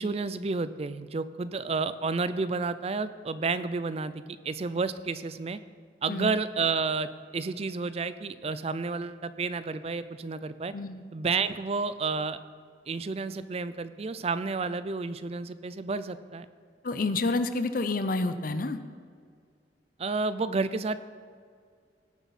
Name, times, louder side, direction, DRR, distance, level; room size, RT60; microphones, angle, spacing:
voice 1, 0.0-4.1 4.4-5.6 6.0-10.7 11.1-12.4 12.9-16.5 20.0-21.0, right 4 dB, 35° right, 13 dB, 0.4 m, -30 dB
voice 2, 16.8-18.8, left 2 dB, 50° left, 10 dB, 0.7 m, -28 dB
17.5 x 7.2 x 4.2 m, 2.1 s
head